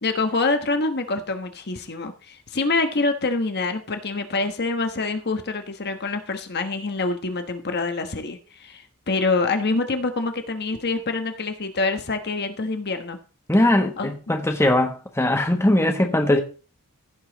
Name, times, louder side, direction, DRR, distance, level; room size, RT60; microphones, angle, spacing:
voice 1, 0.0-13.2 14.0-14.1, left 3 dB, 50° left, 1.2 m, -26 dB
voice 2, 13.5-16.4, left 1 dB, 10° left, 1.2 m, -20 dB
16.0 x 5.5 x 4.0 m
head